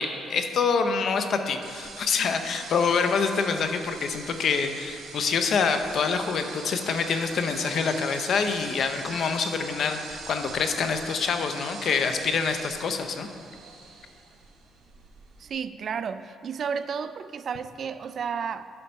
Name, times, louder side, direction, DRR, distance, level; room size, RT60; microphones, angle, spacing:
voice 1, 0.0-13.3, left 5 dB, 65° left, 7 dB, 0.7 m, -26 dB
sound 1, 1.6-15.5, right 4 dB, 80° right, 1.3 m, -43 dB
voice 2, 15.4-18.7, right 6 dB, 55° right, 12 dB, 0.3 m, -32 dB
7.7 x 5.7 x 5.3 m, 2.4 s
cardioid pair, 90°, 0 cm